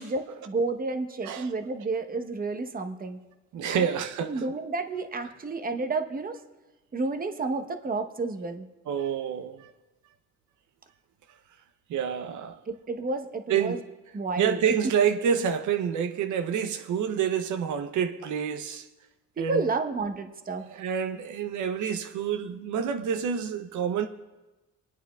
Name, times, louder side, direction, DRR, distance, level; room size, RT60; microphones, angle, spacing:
voice 1, 0.0-3.2 3.7-3.9 4.3-6.4 6.9-8.7 12.7-13.8 14.1-14.8 19.4-20.6, right 3 dB, 30° right, 0.9 m, -31 dB
voice 2, 3.5-4.4 8.9-9.7 11.9-12.6 13.5-13.8 14.4-18.9 19.4-19.6 20.7-24.1, right 7 dB, 75° right, 0.6 m, -28 dB
24.5 x 9.2 x 2.3 m
cardioid pair, 90°, 30 cm